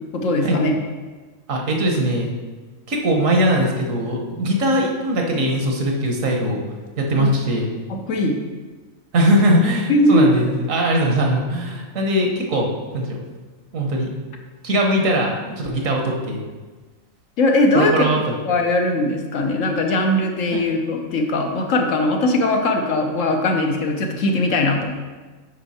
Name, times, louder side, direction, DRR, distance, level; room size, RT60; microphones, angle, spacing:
voice 1, 0.1-0.7 7.2-7.3 7.9-8.4 9.9-10.3 17.4-18.0 18.4-24.9, left 2 dB, 65° left, 3 dB, 1.2 m, -20 dB
voice 2, 1.5-2.3 2.9-6.6 7.0-7.7 9.1-13.2 13.7-14.1 14.6-16.4 17.7-18.3 20.5-20.6, right 1 dB, 65° right, 1 dB, 1.5 m, -20 dB
8.0 x 5.5 x 4.2 m, 1.3 s
omnidirectional pair, 1.5 m